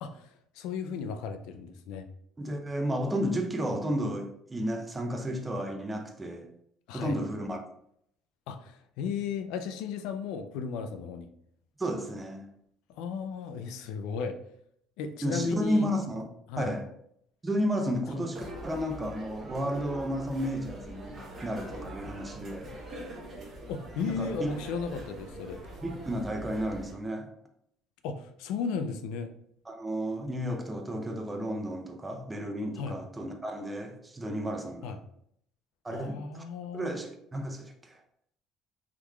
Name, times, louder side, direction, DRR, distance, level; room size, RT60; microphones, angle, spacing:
voice 1, 0.0-2.1 6.9-7.2 8.5-11.3 12.9-14.4 15.0-15.9 16.5-16.7 23.7-25.6 28.0-29.3 32.8-33.0 34.8-35.0 35.9-37.0, left 5 dB, 80° left, 0.4 m, -35 dB
voice 2, 2.4-6.5 6.9-7.6 11.8-12.5 15.2-16.2 16.6-16.9 17.4-22.7 24.0-24.5 25.8-27.3 29.7-35.0 35.8-36.4 36.7-38.0, equal, 15° right, 0.5 m, -32 dB
sound 1, 18.3-26.9, right 1 dB, 35° right, 1.1 m, -43 dB
3.6 x 3.0 x 2.3 m
cardioid pair, 120°, 0 cm